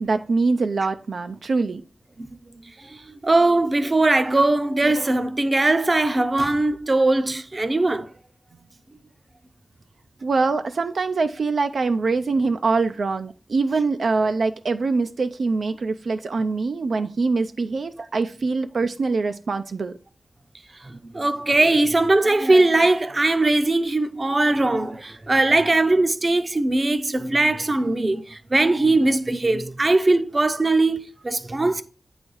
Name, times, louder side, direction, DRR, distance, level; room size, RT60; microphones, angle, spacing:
voice 1, 0.0-1.8 10.2-19.9, right 4 dB, 75° right, 0.4 m, -23 dB
voice 2, 2.6-8.1 20.8-31.8, right 2 dB, 30° right, 0.6 m, -20 dB
8.7 x 4.0 x 4.6 m
wide cardioid pair, 110°, 0 cm